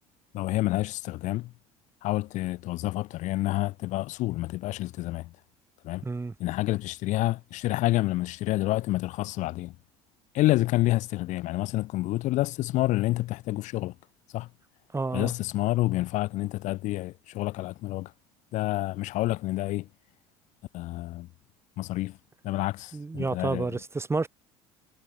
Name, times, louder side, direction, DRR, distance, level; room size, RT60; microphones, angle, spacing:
voice 1, 0.3-1.5 2.0-5.3 5.8-6.1 6.4-9.7 10.3-13.9 14.3-14.5 15.1-18.1 18.5-19.9 20.7-21.3 21.8-22.2 22.4-23.8, left 17 dB, 60° left, 1.0 m, -28 dB
voice 2, 6.0-6.3 14.9-15.3 22.9-24.3, right 3 dB, 20° right, 4.0 m, -30 dB
supercardioid pair, 80°, 14 cm